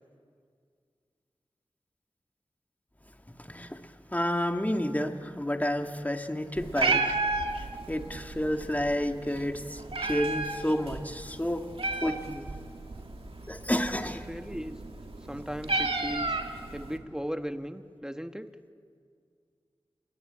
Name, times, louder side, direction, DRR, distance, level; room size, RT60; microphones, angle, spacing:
voice 1, 3.3-7.1 7.9-11.7 12.0-12.5 13.5-14.3, left 1 dB, 15° left, 5 dB, 1.9 m, -30 dB
Meow, 6.6-17.0, right 3 dB, 80° right, 2.0 m, -33 dB
voice 2, 14.3-14.8 15.3-16.4 16.7-18.5, equal, 5° right, 8 dB, 1.3 m, -37 dB
29.5 x 21.0 x 8.7 m, 2.2 s
wide cardioid pair, 45°, 9 cm